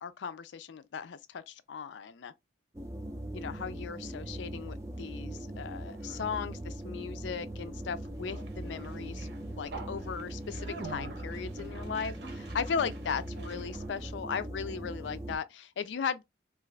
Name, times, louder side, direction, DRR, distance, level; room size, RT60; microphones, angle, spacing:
voice 1, 0.0-2.3 3.3-9.3 9.6-16.2, left 6 dB, 80° left, 0.4 m, -37 dB
sound 1, 2.7-15.4, right 1 dB, 15° right, 0.4 m, -40 dB
Conversation, 4.6-14.1, right 3 dB, 70° right, 0.7 m, -47 dB
2.5 x 2.4 x 3.1 m
head